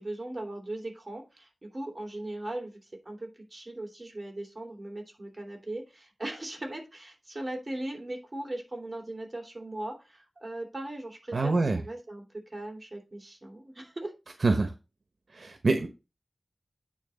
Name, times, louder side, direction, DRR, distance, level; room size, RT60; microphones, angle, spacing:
voice 1, 0.0-14.4, right 1 dB, 30° right, 1 dB, 3.1 m, -39 dB
voice 2, 11.3-11.8 14.4-14.7 15.3-15.9, right 3 dB, 70° right, 7 dB, 1.0 m, -25 dB
9.2 x 3.6 x 6.2 m, 0.28 s
wide cardioid pair, 80°, 0 cm